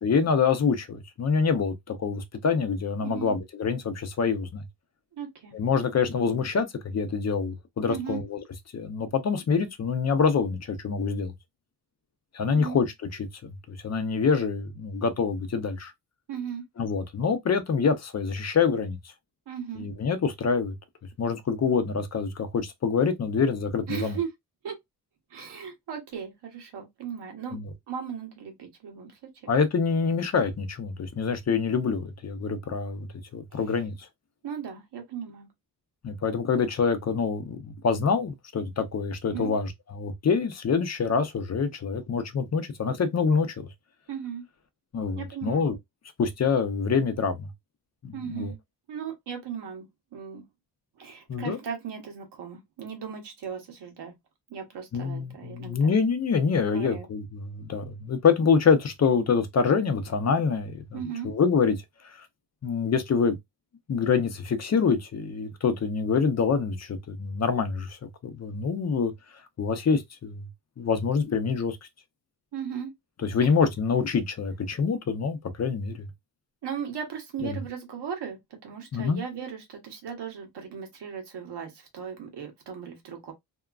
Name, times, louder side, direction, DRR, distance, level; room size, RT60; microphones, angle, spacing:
voice 1, 0.0-4.6 5.5-8.4 8.7-11.3 12.3-12.9 13.4-15.9 16.8-19.0 19.8-20.7 21.2-24.2 27.5-27.7 29.5-34.1 36.0-43.7 44.9-45.7 46.2-47.5 48.0-48.5 51.3-51.6 54.9-61.0 61.2-61.8 62.0-62.3 62.6-63.4 63.9-69.1 69.6-70.5 70.8-71.8 73.2-76.1 77.4-77.6 78.9-79.2, left 5 dB, 40° left, 0.6 m, -26 dB
voice 2, 3.0-3.4 5.1-5.6 7.9-8.2 12.5-12.8 16.3-16.6 19.5-19.9 23.9-24.3 24.6-24.8 25.3-27.6 27.9-29.5 34.4-35.5 39.3-39.5 44.1-44.4 45.1-45.7 48.1-48.6 48.9-49.9 50.1-50.5 51.0-54.1 54.5-55.9 56.7-57.1 60.9-61.3 72.5-72.9 73.4-73.5 76.6-83.3, right 7 dB, 90° right, 1.1 m, -37 dB
2.8 x 2.3 x 2.3 m
wide cardioid pair, 105°, 40 cm